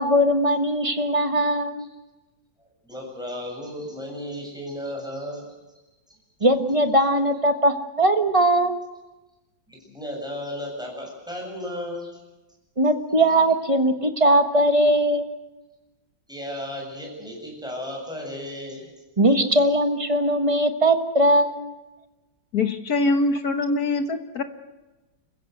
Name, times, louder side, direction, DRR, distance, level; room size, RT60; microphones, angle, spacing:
voice 1, 0.0-1.9 6.4-8.7 12.8-15.3 19.2-21.7, right 1 dB, 20° right, 7 dB, 1.3 m, -20 dB
voice 2, 2.6-5.5 6.1-6.2 9.7-12.2 16.3-18.9, left 1 dB, ahead, -1 dB, 7.7 m, -34 dB
voice 3, 22.5-24.4, left 3 dB, 55° left, 8 dB, 1.5 m, -23 dB
30.0 x 15.5 x 8.0 m, 1.1 s
omnidirectional pair, 2.2 m